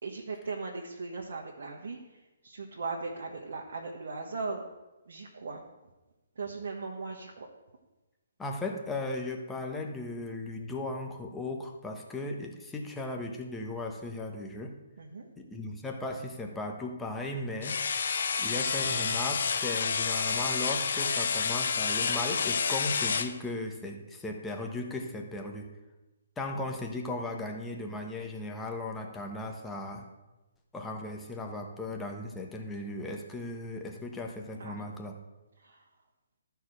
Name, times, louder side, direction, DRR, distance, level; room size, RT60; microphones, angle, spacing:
voice 1, 0.0-2.0 2.4-4.6 5.1-5.6 6.4-7.5 15.0-15.3 34.6-34.8 35.6-35.8, right 4 dB, 60° right, 0 dB, 1.4 m, -38 dB
voice 2, 8.4-14.7 15.4-25.7 26.4-30.1 30.7-35.2, left 2 dB, 10° left, 2 dB, 1.2 m, -37 dB
sound 1, 17.6-23.3, left 6 dB, 60° left, 0.8 m, -29 dB
13.0 x 4.6 x 6.2 m, 1.1 s
figure-of-eight pair, 140°, 0 cm